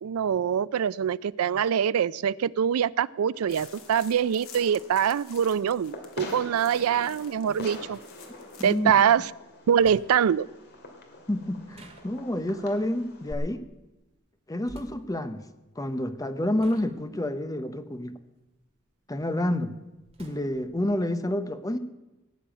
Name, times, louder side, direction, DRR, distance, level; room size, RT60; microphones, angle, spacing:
voice 1, 0.0-8.0 8.6-9.3 9.7-10.5, right 8 dB, 90° right, 20 dB, 0.4 m, -24 dB
Fireworks, 3.3-13.3, left 1 dB, 50° left, 2.3 m, -45 dB
sound 1, 3.5-8.8 9.1-9.2, left 7 dB, 80° left, 2.0 m, -50 dB
voice 2, 8.6-8.9 11.3-13.7 14.5-15.4 15.8-18.1 19.1-19.7 20.2-21.8, left 1 dB, 15° left, 10 dB, 0.8 m, -29 dB
sound 2, 9.8-10.4 11.7-12.5 14.6-15.1 16.0-16.2 16.6-18.9 19.4-20.9, right 1 dB, 30° right, 2.1 m, -52 dB
17.5 x 7.0 x 8.9 m, 1.0 s
head